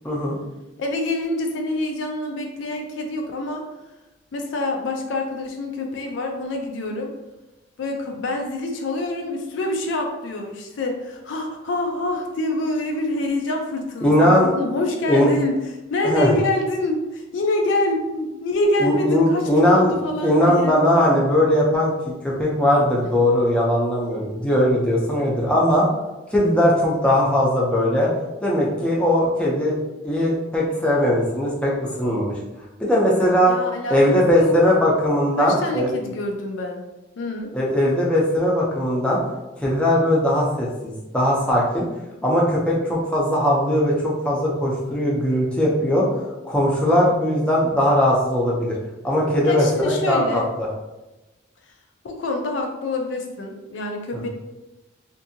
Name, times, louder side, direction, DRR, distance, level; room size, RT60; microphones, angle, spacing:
voice 1, 0.0-0.4 14.0-14.5 15.1-15.3 16.0-16.3 18.8-19.9 20.2-21.9 22.2-25.9 26.3-28.1 28.4-29.8 30.0-32.3 32.8-33.5 33.9-35.9 37.5-39.2 39.6-41.8 42.2-46.1 46.4-48.8 49.0-50.7, left 1 dB, 5° left, -5 dB, 0.5 m, -19 dB
voice 2, 0.8-3.6 4.3-7.1 7.8-15.5 15.9-20.8 33.5-34.6 35.4-36.8 37.2-37.5 49.4-50.5 52.0-54.3, left 2 dB, 65° left, 3 dB, 0.4 m, -26 dB
2.6 x 2.5 x 2.6 m, 1.0 s
head